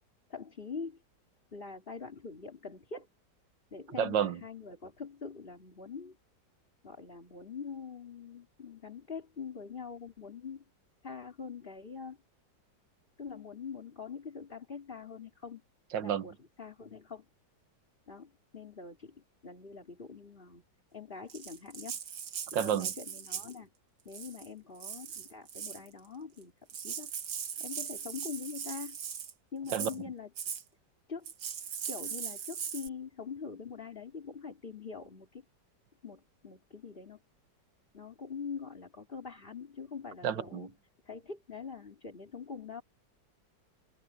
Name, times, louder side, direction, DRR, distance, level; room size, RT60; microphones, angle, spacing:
voice 1, 0.3-1.0 1.5-3.1 3.7-6.2 6.8-10.6 11.0-12.2 13.2-15.6 16.0-17.3 18.1-20.6 20.9-22.0 22.5-23.7 24.1-26.5 26.8-27.1 27.6-29.0 29.5-30.3 31.1-31.3 31.9-35.4 36.0-37.2 37.9-40.7 41.0-42.8, left 5 dB, 30° left, 3.6 m, -44 dB
voice 2, 4.0-4.4 15.9-16.3 22.5-22.9 29.7-29.9 40.2-40.7, right 8 dB, 85° right, 1.7 m, -30 dB
Rattle (instrument), 21.3-23.6 24.1-24.5 24.8-25.9 26.4-26.5 26.7-29.3 29.7-30.0 30.4-30.6 31.2-32.9, right 8 dB, 70° right, 1.9 m, -39 dB
omnidirectional pair, 2.0 m